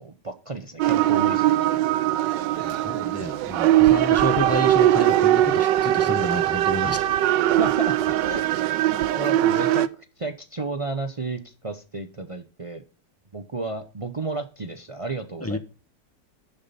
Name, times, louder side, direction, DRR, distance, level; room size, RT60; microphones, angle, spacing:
voice 1, 0.0-1.8 7.5-8.4 8.8-12.8 13.3-15.6, right 3 dB, 55° right, 0.3 m, -32 dB
sound 1, 0.8-9.9, right 13 dB, 85° right, 1.3 m, -21 dB
voice 2, 2.6-7.1 15.4-15.6, left 1 dB, 15° left, 0.5 m, -30 dB
11.0 x 6.9 x 4.1 m
omnidirectional pair, 1.9 m